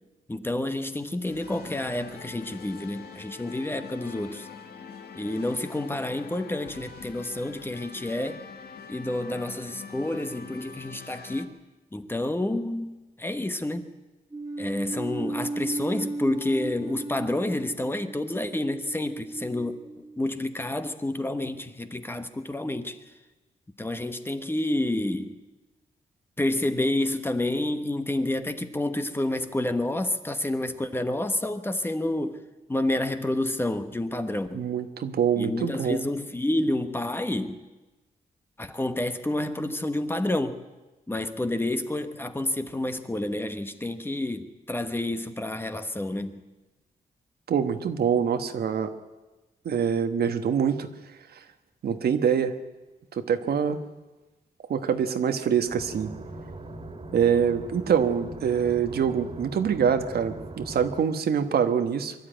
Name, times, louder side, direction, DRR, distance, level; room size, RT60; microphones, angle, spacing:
voice 1, 0.3-4.5 5.1-8.4 8.9-11.5 11.9-13.9 14.6-23.0 23.8-25.4 26.4-32.4 32.7-34.7 35.4-37.6 38.6-40.6 41.1-46.4, left 1 dB, 15° left, 8 dB, 1.3 m, -29 dB
sound 1, 1.3-11.4, left 5 dB, 90° left, 1.8 m, -44 dB
sound 2, 14.3-20.7, right 2 dB, 20° right, 1.5 m, -36 dB
voice 2, 34.5-36.0 47.5-48.9 49.6-50.9 51.8-52.5 53.1-53.8 54.7-56.1 57.1-62.1, right 7 dB, 80° right, 8 dB, 1.4 m, -25 dB
sound 3, 55.7-61.0, right 1 dB, 35° right, 2.4 m, -40 dB
23.5 x 12.5 x 9.2 m, 1.1 s
wide cardioid pair, 110°, 16 cm